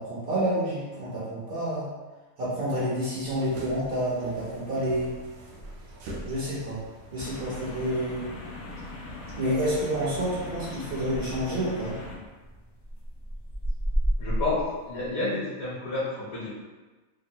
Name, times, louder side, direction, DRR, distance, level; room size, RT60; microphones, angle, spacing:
voice 1, 0.0-1.9 2.4-5.1 6.2-6.8 7.1-8.2 9.4-11.9, right 1 dB, 55° right, -8 dB, 0.7 m, -29 dB
sound 1, 3.2-11.8, right 1 dB, 70° right, 1.0 m, -45 dB
sound 2, 7.2-12.2, left 2 dB, 90° left, 1.1 m, -40 dB
sound 3, 10.0-15.1, right 1 dB, 40° left, 0.3 m, -32 dB
voice 2, 14.2-16.5, left 2 dB, 65° left, -8 dB, 1.2 m, -30 dB
3.0 x 2.2 x 2.7 m, 1.2 s
omnidirectional pair, 1.6 m